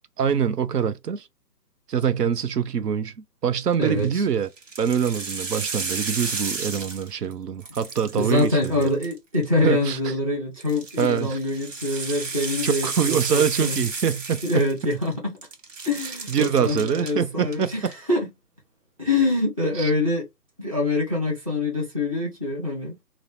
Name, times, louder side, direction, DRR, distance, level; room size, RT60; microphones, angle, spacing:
voice 1, 0.2-1.3 1.9-3.1 3.4-4.5 4.8-8.9 9.6-10.1 11.0-11.4 12.6-14.6 16.3-17.9 19.8-19.9, right 8 dB, 70° right, 0.5 m, -24 dB
sound 1, 3.7-4.1 4.6-7.3 7.6-9.4 10.6-15.1 15.4-17.1 17.5-17.9, right 4 dB, 50° right, 0.9 m, -32 dB
voice 2, 3.8-4.2 8.2-13.9 14.4-15.4 15.8-18.3 19.0-20.2 20.6-23.0, left 2 dB, 25° right, 0.6 m, -25 dB
2.8 x 2.0 x 2.9 m
figure-of-eight pair, 160°, 49 cm